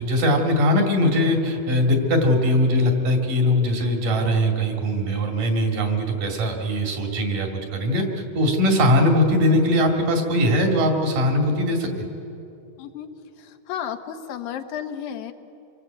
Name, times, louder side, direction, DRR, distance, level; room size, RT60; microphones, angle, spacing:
voice 1, 0.0-12.1, left 1 dB, 70° right, 2 dB, 4.0 m, -21 dB
voice 2, 12.8-13.1 13.4-15.3, left 9 dB, 90° left, 6 dB, 2.9 m, -33 dB
26.0 x 21.0 x 8.1 m, 2.8 s
omnidirectional pair, 4.0 m